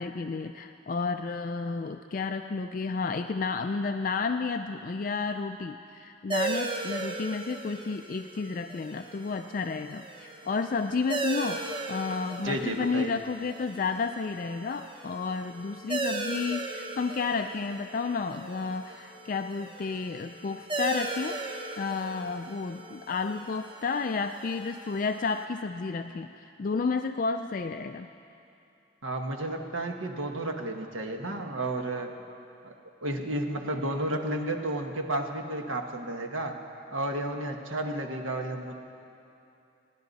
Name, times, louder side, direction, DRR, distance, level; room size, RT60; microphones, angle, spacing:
voice 1, 0.0-21.4 21.8-28.1, left 4 dB, 45° left, 7 dB, 0.3 m, -31 dB
sound 1, 6.3-25.4, right 3 dB, 25° right, 0.7 m, -38 dB
voice 2, 12.4-13.1 29.0-32.1 32.6-32.7 33.0-36.6 36.9-38.7, right 1 dB, 85° right, 4 dB, 1.3 m, -32 dB
28.0 x 10.5 x 4.1 m, 2.7 s
head